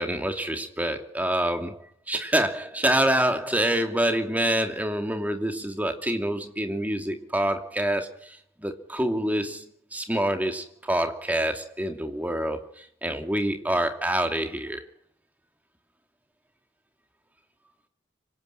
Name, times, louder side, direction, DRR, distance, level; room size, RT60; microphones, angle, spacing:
voice 1, 0.0-1.8 2.1-8.4 8.6-9.6 9.9-14.8, right 1 dB, 10° right, 2.7 m, -26 dB
25.5 x 18.0 x 9.1 m
head